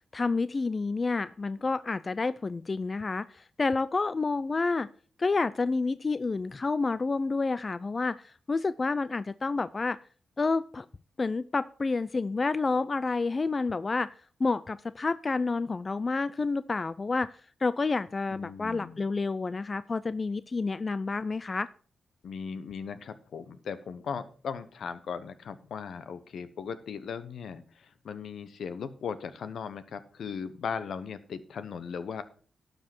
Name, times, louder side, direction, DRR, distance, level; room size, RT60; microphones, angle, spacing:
voice 1, 0.1-4.9 5.2-10.0 10.4-10.8 11.2-14.1 14.4-17.3 17.6-21.7, left 3 dB, 40° left, 16 dB, 0.4 m, -29 dB
voice 2, 18.3-19.0 22.2-32.2, left 6 dB, 75° left, 12 dB, 0.9 m, -38 dB
11.5 x 5.3 x 6.0 m, 0.43 s
cardioid pair, 55°, 0 cm